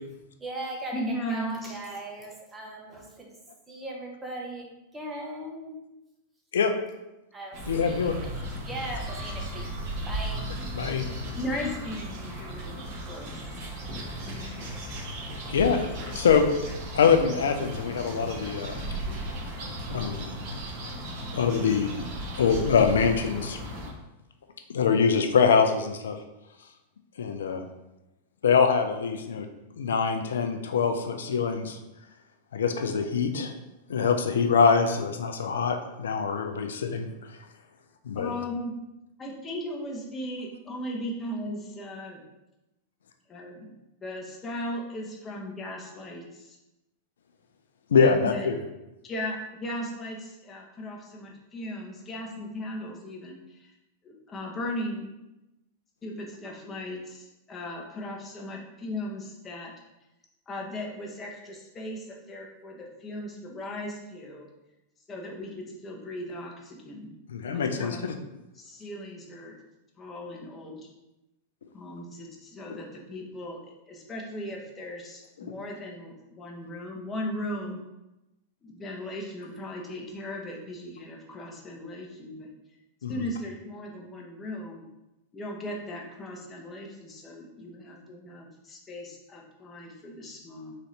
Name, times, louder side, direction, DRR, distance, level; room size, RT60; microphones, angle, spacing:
voice 1, 0.4-3.3 3.7-5.8 7.3-8.3 8.6-9.7 10.1-10.5, right 1 dB, 15° right, -1 dB, 1.0 m, -38 dB
voice 2, 0.9-1.8 11.3-13.4 14.3-14.7 38.2-38.7 39.2-42.2 43.3-43.7 44.0-46.6 48.0-48.5 49.0-53.7 54.0-55.1 56.0-59.7 60.5-64.5 65.1-67.1 67.5-68.1 68.5-69.6 70.0-70.8 71.7-77.8 78.6-82.5 83.1-84.8 85.3-90.8, left 1 dB, 25° left, -1 dB, 0.9 m, -37 dB
sound 1, 7.5-23.9, right 1 dB, 40° right, 1.4 m, -36 dB
voice 3, 7.7-8.2 10.7-11.1 15.5-15.9 16.1-16.5 16.9-18.8 19.9-20.3 21.3-22.0 22.4-23.6 24.7-26.2 27.2-27.7 28.4-29.5 29.8-31.8 32.5-33.5 33.9-37.1 38.1-38.3 47.9-48.5 67.3-68.1 83.0-83.1, left 6 dB, 80° left, 6 dB, 0.4 m, -24 dB
3.9 x 2.7 x 3.2 m, 0.95 s
hypercardioid pair, 100°, 0 cm